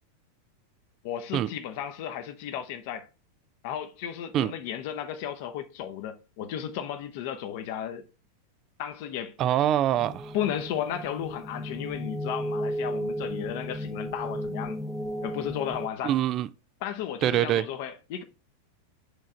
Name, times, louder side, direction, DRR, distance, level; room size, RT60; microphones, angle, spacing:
voice 1, 1.0-3.0 3.6-8.0 8.8-9.4 10.3-14.8 15.2-16.1 16.8-18.2, left 10 dB, 50° left, 1.0 m, -34 dB
voice 2, 9.4-10.3 16.0-16.5 17.2-17.7, right 12 dB, 35° right, 0.4 m, -24 dB
sound 1, 10.0-15.9, equal, ahead, 0.7 m, -34 dB
8.1 x 3.7 x 4.3 m
figure-of-eight pair, 90°, 0 cm